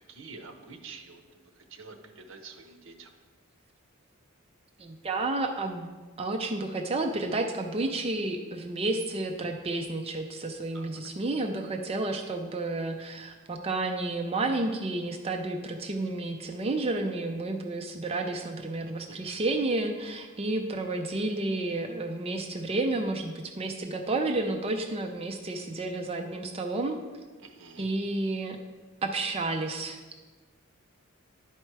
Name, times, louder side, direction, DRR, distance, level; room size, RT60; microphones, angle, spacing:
voice 1, 0.0-3.1 10.7-11.0 27.4-27.9, right 4 dB, 65° right, 6 dB, 0.9 m, -48 dB
voice 2, 4.8-5.9 6.2-27.0 27.8-28.6 29.0-30.0, right 2 dB, 30° right, 4 dB, 0.5 m, -31 dB
11.0 x 4.3 x 4.6 m, 1.3 s
head